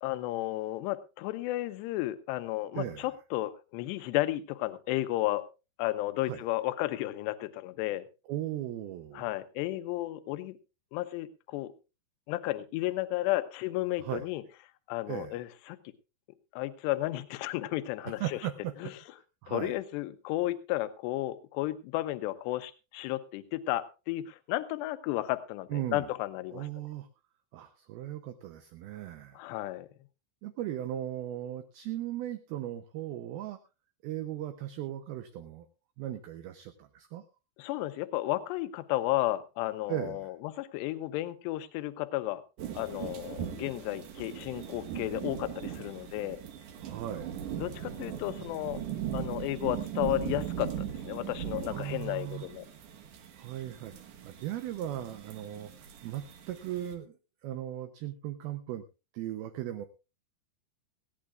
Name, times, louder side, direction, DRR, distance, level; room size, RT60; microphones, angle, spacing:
voice 1, 0.0-5.5 5.8-8.1 9.1-10.6 10.9-11.7 12.3-14.4 14.9-15.8 16.5-18.4 18.8-18.9 19.5-26.7 29.3-29.9 37.6-42.4 42.7-46.4 47.6-48.8 49.1-52.7, left 16 dB, 80° left, 12 dB, 2.8 m, -33 dB
voice 2, 2.8-3.1 6.2-6.4 8.3-9.3 14.0-14.3 15.1-15.4 18.0-18.9 19.4-19.8 25.7-26.1 26.5-27.1 27.5-29.4 30.4-33.6 34.0-35.7 36.0-37.2 39.9-40.3 46.8-47.4 51.7-52.5 53.4-53.9 54.2-55.7 56.0-57.2 57.4-58.8 59.1-59.9, right 12 dB, 80° right, 9 dB, 2.2 m, -37 dB
sound 1, 42.6-56.9, right 9 dB, 65° right, 2.1 m, -39 dB
19.0 x 16.0 x 2.4 m, 0.29 s
omnidirectional pair, 5.3 m